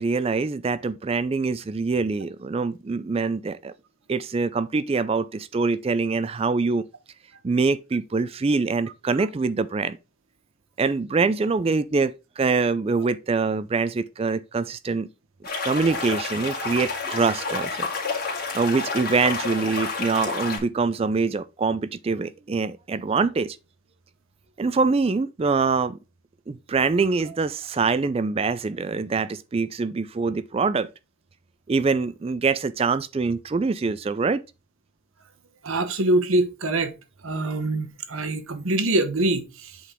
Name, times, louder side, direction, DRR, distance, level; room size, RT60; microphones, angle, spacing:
voice 1, 0.0-3.7 4.1-6.8 7.4-10.0 10.8-15.1 15.6-17.9 18.5-23.6 24.6-26.0 26.5-30.9 31.7-34.4, right 4 dB, 25° right, 0.3 m, -24 dB
sound 1, 15.4-20.6, left 4 dB, 45° left, 2.1 m, -29 dB
voice 2, 15.5-15.9 35.6-36.9 37.2-39.8, right 2 dB, 75° right, 1.0 m, -24 dB
8.2 x 4.0 x 3.6 m
head